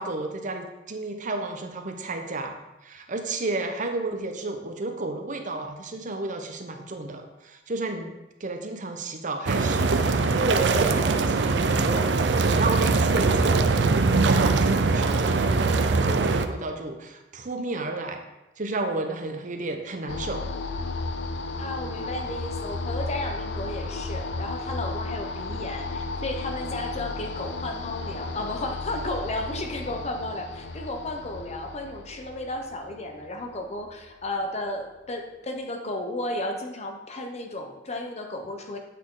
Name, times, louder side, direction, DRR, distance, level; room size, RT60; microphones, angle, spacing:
voice 1, 0.0-8.1 8.4-15.7 16.0-18.2 18.6-20.4, right 2 dB, 45° right, 5 dB, 0.8 m, -32 dB
sound 1, 9.5-16.5, right 3 dB, 75° right, 0.5 m, -22 dB
sound 2, 20.1-34.2, left 3 dB, 75° left, 0.5 m, -34 dB
voice 2, 21.6-38.8, left 1 dB, 40° left, 4 dB, 0.9 m, -33 dB
8.3 x 6.3 x 3.8 m, 0.97 s
head